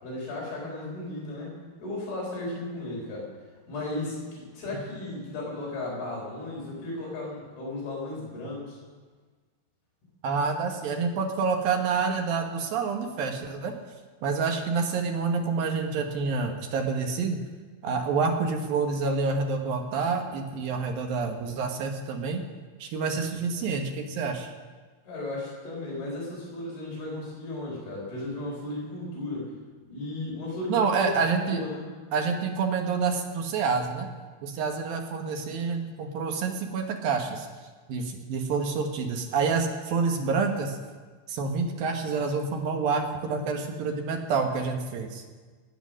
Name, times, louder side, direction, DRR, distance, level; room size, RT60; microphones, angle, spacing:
voice 1, 0.0-3.3 3.7-8.8 25.0-29.5 29.9-31.8, left 2 dB, 60° left, -4 dB, 5.9 m, -35 dB
voice 2, 10.2-13.7 14.2-17.4 17.8-22.4 22.8-24.5 30.7-31.6 32.1-34.1 34.4-37.5 37.9-40.8 41.3-45.2, right 4 dB, 65° right, 3 dB, 2.7 m, -28 dB
19.0 x 9.1 x 6.3 m, 1.4 s
omnidirectional pair, 4.9 m